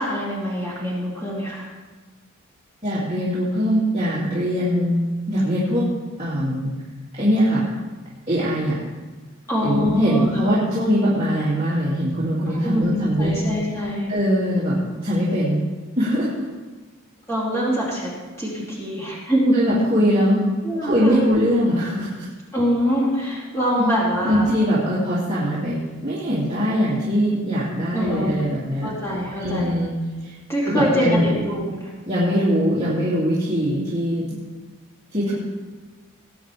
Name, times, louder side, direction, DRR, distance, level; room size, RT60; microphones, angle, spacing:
voice 1, 0.0-1.7 9.5-10.3 12.5-14.1 17.3-18.1 18.4-19.6 20.6-21.4 22.5-24.5 27.9-28.3 28.8-29.7 30.5-31.9, equal, 15° left, -6 dB, 2.8 m, -24 dB
voice 2, 2.8-5.8 6.2-6.7 7.2-7.6 8.3-8.8 9.6-13.4 14.1-14.8 15.0-15.6 16.0-16.5 19.5-20.4 20.8-22.3 23.8-23.9 24.2-28.9 29.4-29.9 30.2-30.3 30.6-31.2 32.1-34.4 35.1-35.4, equal, 25° right, -10 dB, 2.7 m, -21 dB
19.0 x 9.3 x 3.5 m, 1.3 s
head